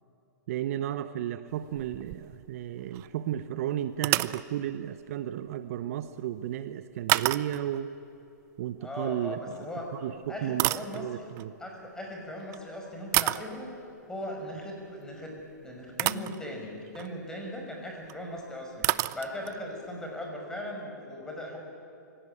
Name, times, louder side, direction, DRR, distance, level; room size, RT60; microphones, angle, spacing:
voice 1, 0.5-7.9 8.6-9.5 9.9-11.5, right 11 dB, 50° right, 12 dB, 0.9 m, -33 dB
object falls on wood, 1.5-2.6 2.9-3.1 4.0-4.5 7.1-7.8 9.5-9.7 10.2-11.5 12.4-12.6 13.1-13.6 15.4-15.5 16.0-16.4 16.9-17.2 18.1-18.2 18.4-18.5 18.8-19.6, right 19 dB, 30° right, 0.5 m, -29 dB
voice 2, 8.8-9.8 10.3-11.2 11.6-13.7 14.1-15.4 15.6-21.6, left 1 dB, 5° left, 0 dB, 5.7 m, -38 dB
24.5 x 17.0 x 9.9 m, 2.7 s
hypercardioid pair, 135°, 10 cm